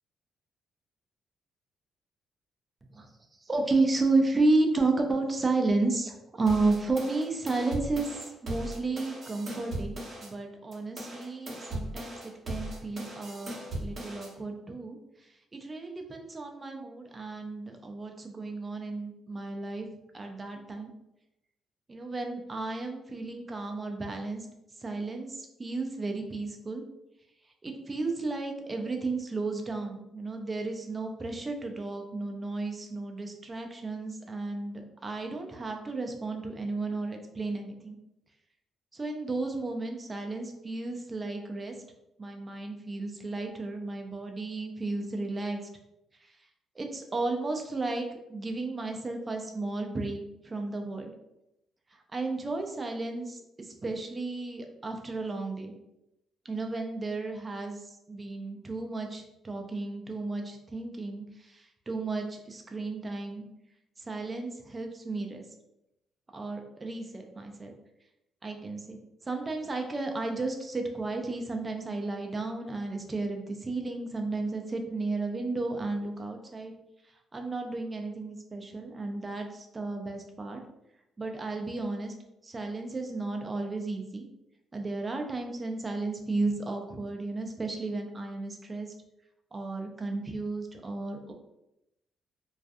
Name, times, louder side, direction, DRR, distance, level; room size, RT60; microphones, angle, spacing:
voice 1, 3.4-19.9 20.1-20.9 21.9-24.5 24.8-26.8 27.6-38.0 38.9-41.7 42.2-45.6 46.2-46.3 46.8-51.1 52.1-55.7 56.4-63.4 64.0-65.4 66.3-67.7 68.4-69.0 69.2-76.7 77.3-80.6 81.2-82.1 82.4-84.2 84.7-88.9 89.5-91.3, right 3 dB, 25° right, 3 dB, 0.4 m, -33 dB
sound 1, 6.5-10.3 10.7-14.3, right 1 dB, 45° right, 1.0 m, -38 dB
2.3 x 2.2 x 2.5 m, 0.86 s
cardioid pair, 90°, 0 cm